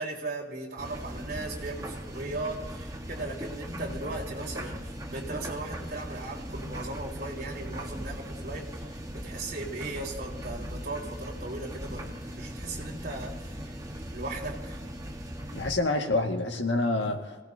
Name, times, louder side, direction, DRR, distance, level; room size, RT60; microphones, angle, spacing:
voice 1, 0.0-13.8 14.1-14.8 17.0-17.2, right 2 dB, 50° right, -5 dB, 3.6 m, -38 dB
sound 1, 0.8-15.7, equal, 20° right, 1.3 m, -39 dB
voice 2, 15.5-17.4, left 2 dB, 85° left, 3 dB, 1.8 m, -27 dB
25.5 x 17.5 x 2.8 m, 1.4 s
head